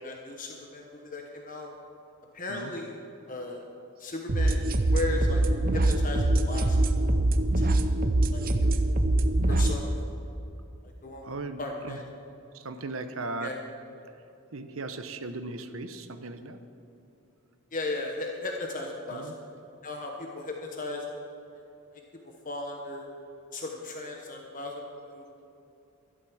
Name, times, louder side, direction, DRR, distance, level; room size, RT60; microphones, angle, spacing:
voice 1, 0.0-1.7 2.3-2.9 3.3-3.6 4.0-4.6 4.9-5.4 5.7-6.8 7.5-7.8 8.3-8.8 9.5-9.9 11.0-12.0 13.4-13.5 17.7-19.3 19.8-21.1 22.4-23.1 23.5-25.3, left 2 dB, 35° left, 1 dB, 1.2 m, -36 dB
sound 1, 4.3-9.8, right 1 dB, 40° right, 0.6 m, -24 dB
voice 2, 11.2-12.0 12.5-13.6 14.5-16.6 19.1-19.3, right 3 dB, 65° right, 9 dB, 0.9 m, -37 dB
12.5 x 11.5 x 6.3 m, 2.9 s
head